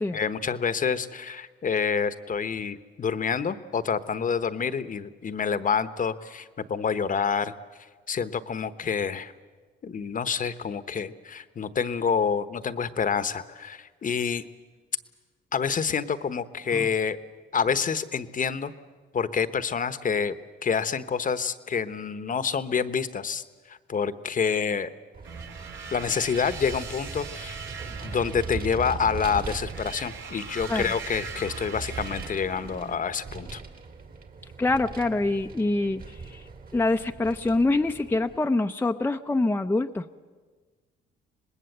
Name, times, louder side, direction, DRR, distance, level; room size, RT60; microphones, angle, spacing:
voice 1, 0.1-7.5 8.1-9.3 9.8-14.4 15.5-17.2 17.5-18.7 19.1-20.4 20.6-23.4 23.7-24.9 25.9-27.6 28.0-33.6, left 6 dB, 40° left, 13 dB, 1.0 m, -27 dB
Vehicle, 25.1-38.4, right 4 dB, 45° right, 2.6 m, -40 dB
sound 1, 25.2-33.0, right 5 dB, 70° right, 2.8 m, -41 dB
voice 2, 34.6-36.4 36.7-40.2, left 2 dB, 10° left, 5 dB, 0.7 m, -25 dB
25.5 x 20.0 x 8.0 m, 1.4 s
cardioid pair, 90°, 20 cm